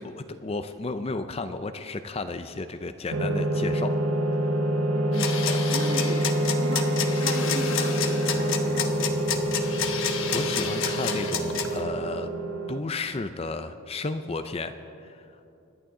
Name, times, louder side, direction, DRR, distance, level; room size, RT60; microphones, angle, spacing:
voice 1, 0.0-4.0 4.4-4.5 5.5-5.6 9.6-9.8 10.3-12.3 12.7-15.3, left 3 dB, 25° left, 10 dB, 0.4 m, -33 dB
sound 1, 3.1-12.8, right 1 dB, 85° right, 0.9 m, -26 dB
voice 2, 4.9-5.3 5.7-9.6, right 1 dB, 45° right, 3 dB, 1.5 m, -37 dB
sound 2, 5.1-11.8, left 7 dB, 65° left, 1.1 m, -30 dB
sound 3, 5.6-12.3, right 1 dB, 20° right, 4.0 m, -44 dB
26.0 x 11.0 x 3.8 m, 2.7 s
head